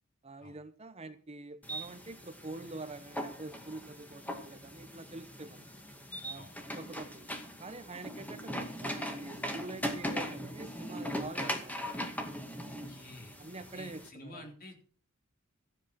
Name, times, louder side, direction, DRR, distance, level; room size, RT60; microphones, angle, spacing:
voice 1, 0.2-5.7 6.2-6.5 6.8-7.3 7.6-11.8 13.4-14.5, right 2 dB, 30° right, 0.9 m, -46 dB
sound 1, 1.6-14.1, equal, 10° left, 2.2 m, -40 dB
voice 2, 12.6-13.4 13.7-14.8, left 1 dB, 45° left, 3.7 m, -50 dB
14.5 x 8.0 x 6.2 m
head